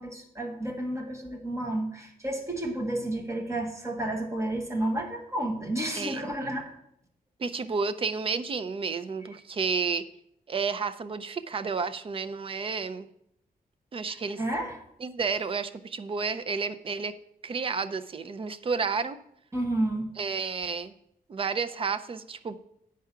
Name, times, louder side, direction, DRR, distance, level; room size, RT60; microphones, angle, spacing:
voice 1, 0.0-6.7 14.1-14.7 19.5-20.1, right 1 dB, 20° right, 2 dB, 1.3 m, -31 dB
voice 2, 5.9-6.2 7.4-10.1 10.5-13.1 13.9-14.4 15.0-17.1 17.4-19.2 20.2-20.9 21.3-22.6, right 5 dB, 35° right, 12 dB, 0.5 m, -31 dB
9.3 x 4.7 x 5.7 m, 0.74 s
wide cardioid pair, 145°, 15 cm